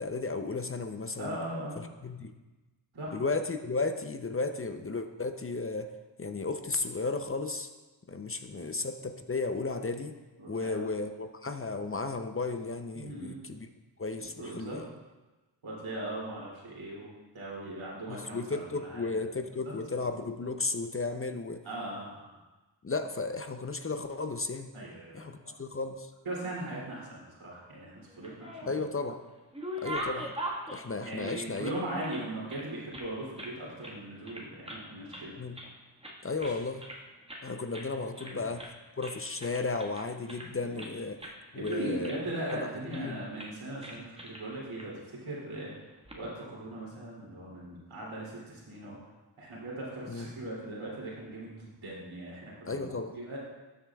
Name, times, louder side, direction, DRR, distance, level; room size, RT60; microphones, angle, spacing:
voice 1, 0.0-1.4 1.8-2.3 3.1-5.9 6.2-7.7 8.1-10.2 10.5-13.7 14.0-14.8 18.1-21.6 22.8-24.7 25.1-26.1 28.7-29.2 29.8-30.3 30.7-31.7 35.4-35.6 36.2-36.8 37.4-38.7 39.0-41.2 41.5-42.1 42.5-43.2 50.1-50.3 52.7-53.2, left 3 dB, 30° left, 7 dB, 0.6 m, -34 dB
voice 2, 1.2-1.8 2.9-3.1 8.5-8.7 10.4-10.9 12.9-13.4 14.4-14.8 15.6-19.3 19.6-19.7 21.6-22.2 24.7-25.5 26.2-28.7 31.0-35.4 36.4-36.5 38.2-38.4 40.6-40.8 41.5-45.7 46.1-49.0 49.4-53.4, right 1 dB, 85° right, -5 dB, 2.8 m, -39 dB
sound 1, 28.1-28.9 29.3-32.2 32.5-33.6 33.8-34.0 34.3-34.9 35.1-35.7 36.0-37.0 37.3-37.5 37.7-37.9 38.2-38.8 39.0-40.9 41.2-41.4 41.6-42.6 42.9-43.1 43.4-43.5 43.8-44.4 44.8-44.9 45.8-46.2, equal, 10° right, 1.5 m, -41 dB
13.0 x 7.5 x 2.3 m, 1.2 s
cardioid pair, 60°, 46 cm